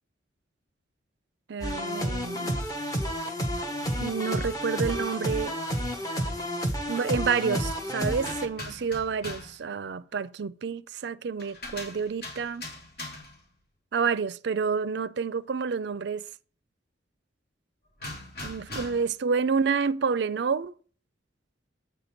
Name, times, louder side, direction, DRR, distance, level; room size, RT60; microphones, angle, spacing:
voice 1, 1.5-2.6 4.0-5.6 6.9-12.7 13.9-16.2 18.4-20.7, right 5 dB, 60° right, 0.4 m, -29 dB
sound 1, 1.6-8.5, equal, 20° left, 1.2 m, -30 dB
Sound port - Sound effects, 8.2-9.6 11.4-13.5 18.0-19.2, left 2 dB, 60° left, 3.1 m, -40 dB
8.5 x 5.2 x 5.9 m
head